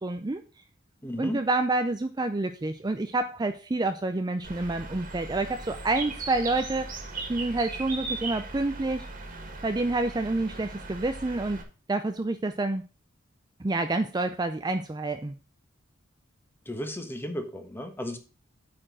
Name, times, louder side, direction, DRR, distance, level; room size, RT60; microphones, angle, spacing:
voice 1, 0.0-0.4 1.2-6.9 7.3-9.1 9.6-11.6 11.9-12.8 13.6-15.3, right 2 dB, 20° right, 8 dB, 0.5 m, -28 dB
voice 2, 1.0-1.4 16.7-18.2, equal, 10° left, 6 dB, 1.3 m, -34 dB
Bird, 4.4-11.6, right 3 dB, 40° right, 1.9 m, -38 dB
8.8 x 4.5 x 6.2 m, 0.34 s
head